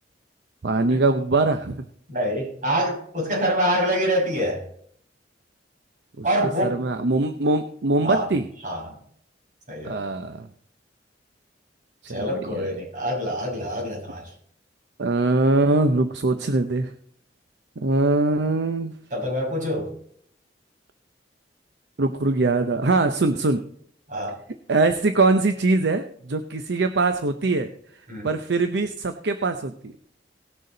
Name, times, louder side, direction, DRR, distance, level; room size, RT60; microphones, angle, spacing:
voice 1, 0.6-1.9 6.2-6.3 6.6-8.5 9.8-10.5 12.1-12.7 15.0-16.9 17.8-18.9 22.0-23.7 24.7-27.7 28.2-29.9, right 2 dB, 70° right, 8 dB, 0.7 m, -22 dB
voice 2, 2.1-4.6 6.2-6.8 8.0-8.3 8.6-9.0 9.7-10.0 12.1-14.3 19.1-19.9 24.1-24.4 28.1-28.3, equal, 45° right, -2 dB, 5.6 m, -25 dB
18.5 x 6.7 x 3.9 m, 0.63 s
head